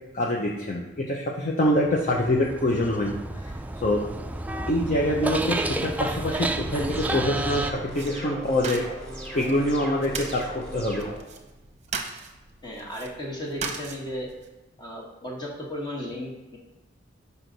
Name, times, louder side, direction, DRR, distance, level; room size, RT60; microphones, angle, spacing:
voice 1, 0.1-3.5 3.8-4.0 4.7-8.8 9.3-11.1, left 1 dB, 40° left, -1 dB, 0.6 m, -25 dB
sound 1, 1.7-7.7, right 2 dB, 10° right, 0.3 m, -31 dB
sound 2, 6.8-11.2, right 1 dB, 10° left, 1.6 m, -37 dB
sound 3, 7.9-14.5, right 5 dB, 35° right, 0.9 m, -39 dB
voice 2, 12.6-14.3 14.8-16.6, left 1 dB, 25° left, -2 dB, 1.5 m, -35 dB
6.2 x 5.6 x 4.0 m, 1.1 s
head